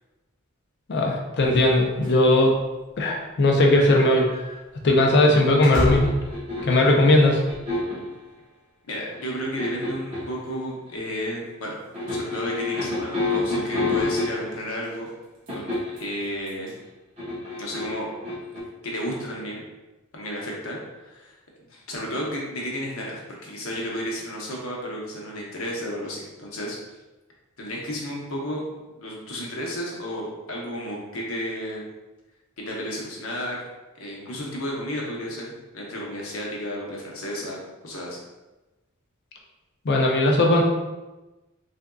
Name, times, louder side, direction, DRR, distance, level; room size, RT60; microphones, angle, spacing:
voice 1, 0.9-2.5 3.0-4.3 4.8-6.1 6.6-7.4 39.8-40.6, left 1 dB, 55° left, 0 dB, 0.5 m, -18 dB
sound 1, 1.5-8.0 8.2-8.3 8.9-9.0 9.7-9.8 10.0-10.1 10.3-10.7 10.9-12.0 12.7-12.9 13.8-14.2 14.6-16.8, equal, 60° right, 0.9 m, -36 dB
sound 2, 5.9-6.9 7.5-8.1 9.1-10.4 11.9-14.7 15.5-16.0 17.2-18.6, left 2 dB, 30° right, 0.9 m, -28 dB
voice 2, 8.8-11.8 12.1-15.1 15.5-16.7 17.6-18.1 18.8-19.6 20.1-21.4 21.7-26.8 27.6-31.8 32.6-33.6 34.0-38.2, equal, 75° left, -3 dB, 0.8 m, -32 dB
3.5 x 2.5 x 2.3 m, 1.1 s
head